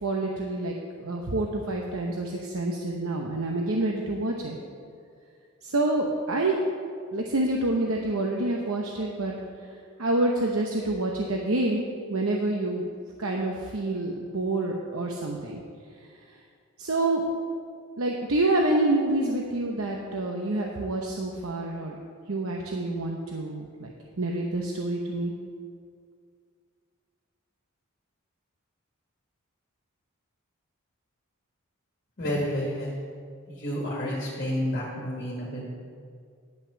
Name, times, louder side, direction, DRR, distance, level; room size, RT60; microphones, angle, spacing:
voice 1, 0.0-4.6 5.6-6.6 7.1-9.3 10.0-12.9 13.2-15.6 16.2-16.3 16.8-17.3 18.0-21.9 22.3-23.9 24.2-25.3, right 2 dB, 75° right, 0 dB, 0.9 m, -27 dB
voice 2, 32.2-32.9 33.5-35.6, equal, 45° left, -4 dB, 1.6 m, -30 dB
10.5 x 5.9 x 7.0 m, 2.2 s
head